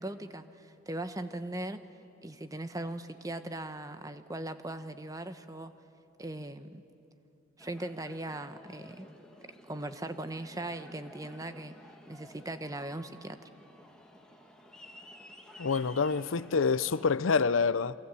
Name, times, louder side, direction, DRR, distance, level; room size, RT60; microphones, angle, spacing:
voice 1, 0.0-1.8 2.2-5.7 6.2-6.8 7.6-9.1 9.6-11.8 12.1-13.5, right 1 dB, 20° right, 1.0 m, -39 dB
Aircraft, 7.6-17.0, left 1 dB, 5° left, 2.0 m, -53 dB
voice 2, 15.6-18.0, left 5 dB, 85° left, 0.6 m, -27 dB
28.0 x 24.5 x 8.2 m
head